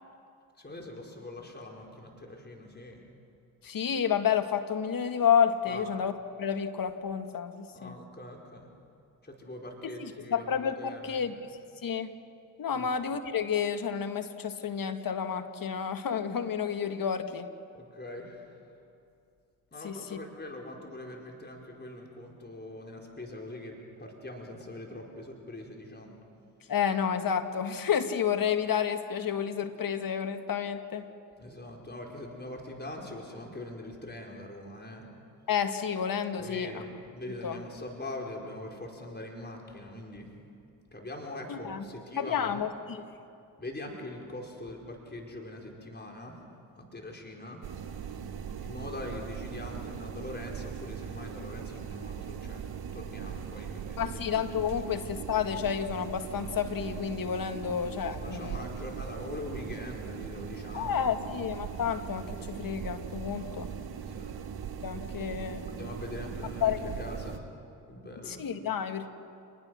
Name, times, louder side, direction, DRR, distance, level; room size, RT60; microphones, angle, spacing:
voice 1, 0.6-3.0 5.7-5.8 7.7-8.7 9.2-11.3 12.7-12.9 17.7-18.7 19.7-26.2 31.4-35.1 36.4-40.3 40.9-42.6 43.6-46.4 46.8-47.6 48.6-52.7 52.9-54.4 58.1-61.3 63.3-63.5 64.1-64.3 65.7-67.5 67.9-68.4, left 1 dB, 25° left, 0 dB, 4.8 m, -42 dB
voice 2, 3.6-6.1 6.4-8.0 10.0-11.3 11.8-12.1 12.6-17.5 19.8-20.2 26.7-31.1 35.5-36.7 37.4-37.6 41.5-41.8 42.2-43.0 54.0-58.6 60.7-63.7 64.8-65.7 66.6-66.9 68.3-69.1, left 8 dB, 50° left, 7 dB, 2.0 m, -30 dB
sound 1, 47.6-67.4, right 7 dB, 55° right, 2.0 m, -39 dB
28.0 x 20.5 x 6.5 m, 2.5 s
hypercardioid pair, 50°, 44 cm